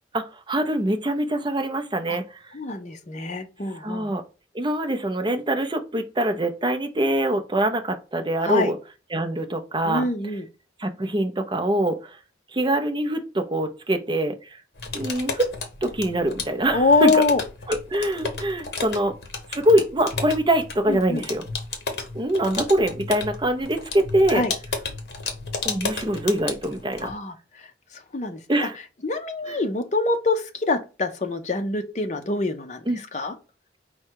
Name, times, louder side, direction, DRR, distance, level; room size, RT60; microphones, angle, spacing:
voice 1, 0.1-2.4 3.8-4.2 4.5-8.8 9.1-10.1 10.8-12.0 12.5-14.3 14.9-15.5 15.8-17.2 17.7-19.1 19.5-21.4 22.1-24.4 25.6-27.1 28.5-28.8 29.5-29.6 32.9-33.0, right 1 dB, 25° right, 7 dB, 0.5 m, -24 dB
voice 2, 2.5-4.1 8.4-8.7 9.8-10.5 16.7-17.4 20.9-21.3 24.3-24.5 27.0-27.7 27.9-28.7 29.0-33.4, left 3 dB, 40° left, 5 dB, 0.6 m, -25 dB
sound 1, 14.8-27.1, left 4 dB, 60° left, 0.9 m, -33 dB
4.7 x 2.2 x 4.5 m, 0.32 s
head